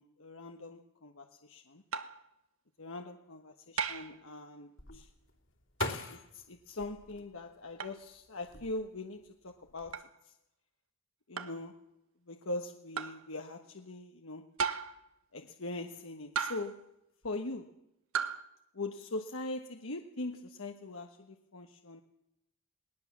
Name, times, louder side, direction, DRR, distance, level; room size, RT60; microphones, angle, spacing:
voice 1, 0.0-1.8 2.8-5.1 6.1-10.3 11.3-12.0 12.3-14.5 15.3-16.9 17.2-17.8 18.7-22.0, left 2 dB, 80° left, 4 dB, 1.3 m, -42 dB
sound 1, 1.9-2.2 3.8-4.2 5.8-6.1 7.8-8.0 9.9-10.1 11.4-11.6 13.0-13.2 14.6-15.1 16.4-16.8 18.1-18.4, right 6 dB, 90° right, 1.4 m, -35 dB
sound 2, 4.8-7.9 8.4-9.1 9.5-9.9, left 3 dB, 60° left, 2.8 m, -42 dB
20.0 x 19.5 x 7.4 m, 0.83 s
head